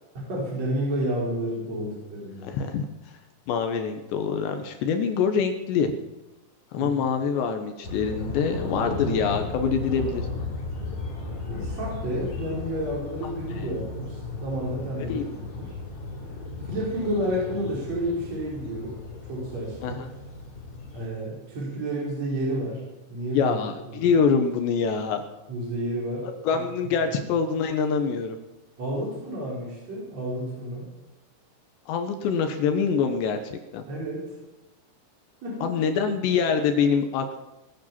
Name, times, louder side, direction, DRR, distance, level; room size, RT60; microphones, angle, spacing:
voice 1, 0.1-2.5 6.8-6.9 11.4-15.2 15.6-15.7 16.6-18.9 19.3-20.0 20.9-22.8 23.1-23.6 24.0-24.1 25.5-26.3 27.0-27.1 28.8-30.9 33.9-34.4 35.4-35.8, right 1 dB, 35° right, -4 dB, 5.4 m, -30 dB
voice 2, 2.4-2.9 3.5-5.9 6.7-10.3 15.1-15.3 19.8-20.1 23.3-25.2 26.4-28.4 31.9-33.8 35.6-37.4, left 6 dB, 75° left, 7 dB, 2.9 m, -25 dB
sound 1, 7.8-21.1, left 3 dB, 40° left, 3.9 m, -35 dB
19.5 x 9.4 x 7.4 m, 0.98 s
omnidirectional pair, 5.9 m